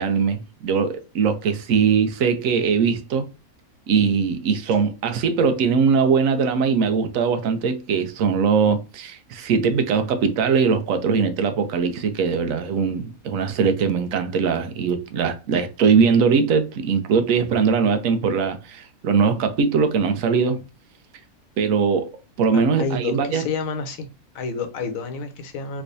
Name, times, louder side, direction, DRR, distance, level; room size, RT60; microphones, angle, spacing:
voice 1, 0.0-3.3 3.9-20.6 21.6-22.1 22.4-23.4, right 5 dB, 70° right, 1.0 m, -21 dB
voice 2, 22.5-24.1 24.3-25.8, left 4 dB, 70° left, 1.1 m, -29 dB
3.3 x 3.1 x 2.6 m
omnidirectional pair, 1.6 m